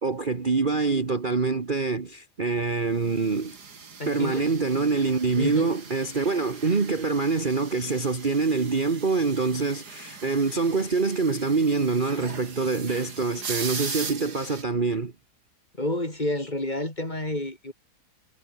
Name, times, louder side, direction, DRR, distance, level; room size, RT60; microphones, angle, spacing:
voice 1, 0.0-3.6 4.1-15.1, right 4 dB, 30° right, 1.6 m, -25 dB
sound 1, 3.0-14.6, right 5 dB, 75° right, 3.0 m, -40 dB
voice 2, 4.0-4.5 5.4-5.7 15.8-17.7, left 1 dB, 25° left, 4.6 m, -29 dB
omnidirectional pair, 1.7 m